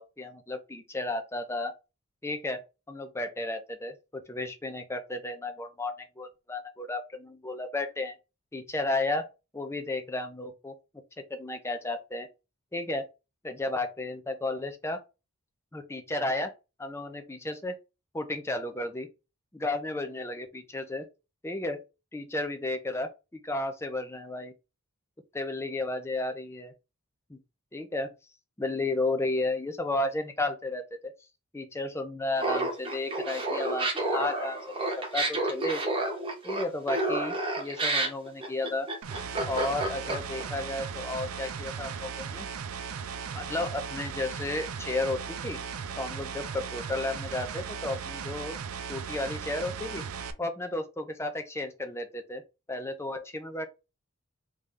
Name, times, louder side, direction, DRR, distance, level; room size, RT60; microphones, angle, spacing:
voice 1, 0.0-1.7 2.2-8.1 8.5-9.3 9.5-10.7 11.3-12.3 12.7-13.1 13.4-15.0 15.7-16.5 16.8-17.8 18.1-19.1 19.5-21.0 21.4-21.8 22.1-24.5 25.3-26.7 27.3-27.4 27.7-28.1 28.6-31.1 31.5-35.8 36.4-38.9 39.4-42.5 43.3-45.6 46.0-48.6 48.9-50.1 50.4-52.4 52.7-53.7, left 2 dB, 10° left, 0.4 m, -33 dB
Laughter, 32.4-40.4, right 2 dB, 25° right, 0.9 m, -30 dB
sound 1, 39.0-50.3, right 6 dB, 75° right, 0.5 m, -37 dB
3.3 x 2.7 x 3.5 m
head